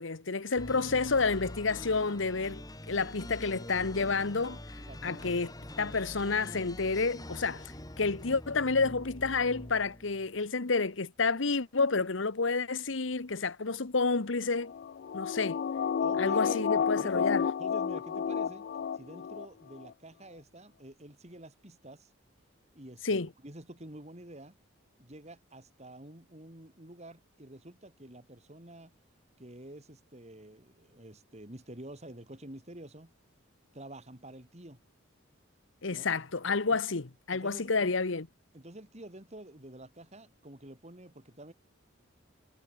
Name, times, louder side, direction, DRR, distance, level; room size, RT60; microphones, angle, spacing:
voice 1, 0.0-2.6 2.9-4.6 5.0-5.5 5.8-14.7 15.1-15.6 16.2-17.4 23.0-23.3 35.8-38.3, left 4 dB, 70° left, 1.1 m, -30 dB
sound 1, 0.6-10.4, left 1 dB, 20° left, 2.5 m, -44 dB
voice 2, 4.9-5.2 16.0-17.3 17.6-18.7 18.9-22.1 22.7-24.6 25.0-28.9 29.4-33.1 33.7-34.8 35.9-36.1 37.3-37.9 38.5-41.5, right 1 dB, 35° right, 3.4 m, -48 dB
sound 2, 14.7-19.5 19.8-19.9, left 7 dB, 55° left, 0.3 m, -31 dB
head